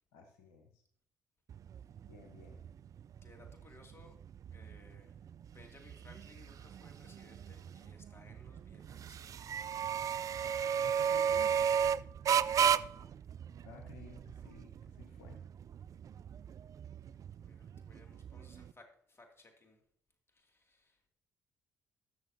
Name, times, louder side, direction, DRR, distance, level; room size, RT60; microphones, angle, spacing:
voice 1, 0.1-0.8 2.1-2.6 10.8-11.7 13.6-15.4, left 5 dB, 85° left, 4 dB, 0.9 m, -55 dB
sound 1, 1.5-18.7, right 8 dB, 50° right, 0.3 m, -35 dB
voice 2, 3.2-4.2 4.5-5.2 5.5-9.5 12.2-13.2 17.1-19.8 20.3-21.0, left 2 dB, 35° left, 3 dB, 2.4 m, -61 dB
19.5 x 6.7 x 2.8 m, 0.66 s
hypercardioid pair, 50°, 8 cm